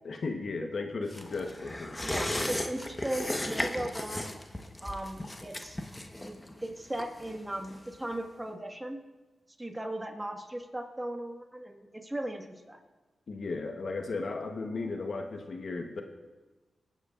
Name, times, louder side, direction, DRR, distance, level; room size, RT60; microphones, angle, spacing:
voice 1, 0.0-2.0 2.3-2.4 13.3-16.0, left 3 dB, 65° left, 4 dB, 1.1 m, -35 dB
sound 1, 1.1-8.2 8.5-8.6, left 1 dB, 20° left, 1.2 m, -36 dB
voice 2, 2.0-4.3 4.8-5.8 6.1-9.0 9.6-12.8, right 1 dB, 15° right, 3 dB, 1.7 m, -37 dB
22.5 x 9.4 x 2.5 m, 1.2 s
cardioid pair, 45°, 0 cm